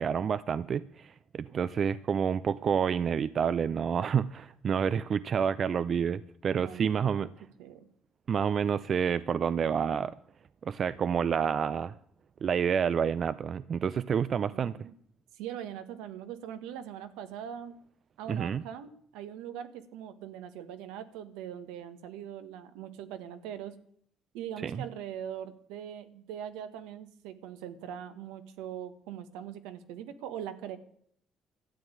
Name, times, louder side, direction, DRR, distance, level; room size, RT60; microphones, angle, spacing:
voice 1, 0.0-7.3 8.3-10.1 10.7-11.9 12.4-14.8 18.3-18.6 24.6-24.8, right 7 dB, 55° right, 16 dB, 0.5 m, -29 dB
voice 2, 6.5-7.3 7.6-7.8 14.5-14.9 15.3-17.8 18.2-23.7 24.3-30.8, right 9 dB, 85° right, 10 dB, 1.4 m, -41 dB
13.0 x 8.9 x 9.1 m, 0.65 s
supercardioid pair, 60°, 0 cm